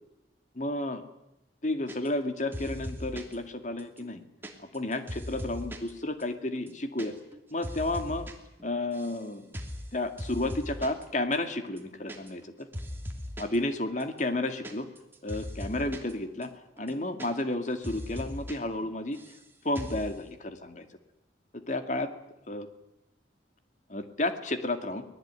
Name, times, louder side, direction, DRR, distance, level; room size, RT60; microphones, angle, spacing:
voice 1, 0.5-1.0 1.6-4.2 4.6-7.1 7.5-8.3 8.6-9.5 9.9-12.7 13.4-14.9 15.2-16.5 16.8-19.2 19.6-20.9 21.5-22.1 22.5-22.7 23.9-25.0, left 2 dB, 40° left, 8 dB, 2.2 m, -32 dB
sound 1, 1.9-2.3 2.5-3.4 3.8-5.9 6.2-6.3 6.6-7.1 7.3-8.3 8.6-9.2 9.5-9.9 10.2-11.0 11.3-11.4 11.7-12.5 12.7-13.6 14.0-16.1 16.4-16.5 16.8-17.6 17.8-18.5 18.8-19.4 19.7-20.1, equal, 10° right, 2.9 m, -39 dB
24.0 x 19.5 x 9.6 m, 0.87 s
head